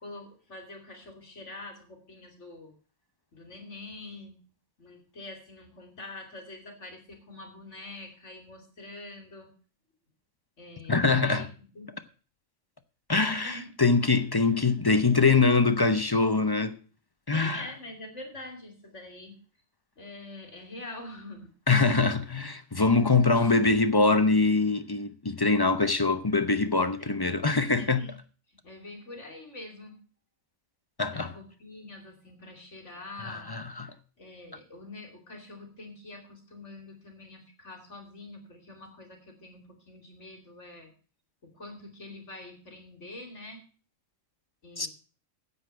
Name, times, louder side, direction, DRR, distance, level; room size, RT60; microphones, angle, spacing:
voice 1, 0.0-2.7 3.3-4.4 4.8-9.5 10.6-11.9 13.4-13.7 14.4-14.5 17.3-19.3 20.0-21.5 23.3-23.5 27.0-27.1 27.5-28.1 28.5-30.0 31.0-33.5 34.2-40.9 41.4-43.6 44.6-44.9, left 2 dB, 60° left, 3.1 m, -45 dB
voice 2, 10.9-11.5 13.1-16.8 17.3-17.6 21.7-28.0 31.0-31.3 33.2-33.9 44.8-44.9, left 3 dB, 25° left, 0.7 m, -23 dB
9.6 x 8.4 x 7.4 m
omnidirectional pair, 1.4 m